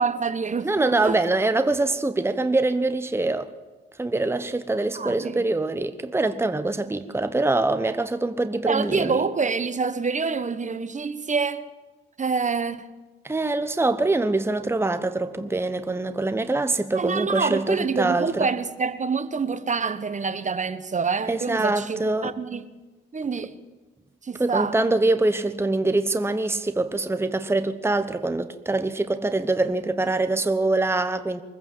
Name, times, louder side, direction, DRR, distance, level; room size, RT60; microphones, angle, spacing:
voice 1, 0.0-1.2 4.9-5.4 8.7-11.7 12.2-12.9 16.9-22.7 23.1-23.6 24.2-24.8, right 5 dB, 35° right, 1.2 m, -26 dB
voice 2, 0.6-3.5 4.0-9.2 13.2-18.5 21.3-22.3 24.4-31.4, right 2 dB, 10° right, 1.1 m, -24 dB
23.5 x 15.0 x 7.7 m
supercardioid pair, 65°, 21 cm